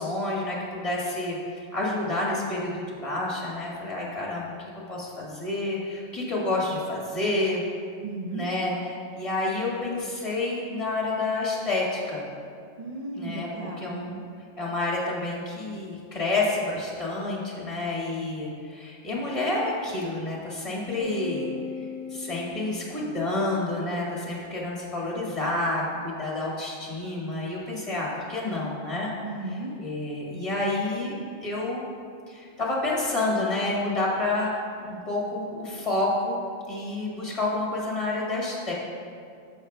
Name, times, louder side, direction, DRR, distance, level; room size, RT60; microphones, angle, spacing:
voice 1, 0.0-7.6 8.3-12.3 13.1-14.1 14.6-21.5 22.1-29.1 29.8-31.1 31.4-31.8 32.3-34.5 34.8-36.4 36.7-38.7, left 2 dB, 25° left, -5 dB, 1.7 m, -29 dB
voice 2, 8.0-8.5 12.8-14.2 29.2-29.8, right 2 dB, 45° right, -1 dB, 0.5 m, -35 dB
sound 1, 21.0-23.5, left 6 dB, 60° left, 1.1 m, -38 dB
11.0 x 7.4 x 2.2 m, 2.3 s
omnidirectional pair, 1.3 m